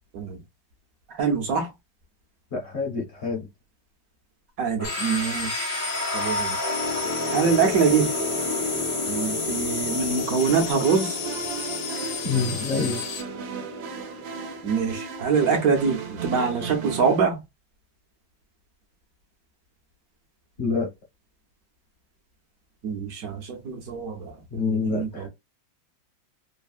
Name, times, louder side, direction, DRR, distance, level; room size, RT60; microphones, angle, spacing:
voice 1, 1.1-1.7 4.6-5.7 6.1-6.6 7.3-8.1 9.1-11.2 14.6-17.4 22.8-25.3, right 5 dB, 60° right, 1.0 m, -24 dB
voice 2, 2.5-3.5 12.2-13.0 20.6-20.9 24.5-25.3, left 4 dB, 55° left, 0.8 m, -27 dB
sound 1, 4.8-13.2, left 6 dB, 70° left, 1.3 m, -32 dB
sound 2, 4.8-15.7, left 1 dB, 20° left, 0.5 m, -31 dB
sound 3, 10.4-17.2, right 7 dB, 80° right, 1.3 m, -36 dB
3.3 x 2.0 x 2.3 m
omnidirectional pair, 2.1 m